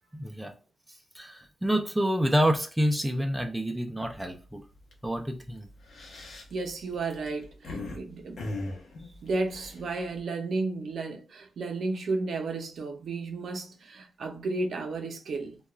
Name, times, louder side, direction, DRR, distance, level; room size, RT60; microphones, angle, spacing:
voice 1, 0.1-0.5 1.1-4.6 5.0-5.7, equal, 5° right, 0.3 m, -28 dB
sound 1, 4.0-4.3 4.7-4.9 5.7-8.0 8.4-10.2, left 2 dB, 80° left, 0.7 m, -38 dB
voice 2, 6.5-8.4 9.2-15.6, right 3 dB, 70° right, 0.5 m, -33 dB
2.3 x 2.2 x 3.0 m
wide cardioid pair, 170°, 0 cm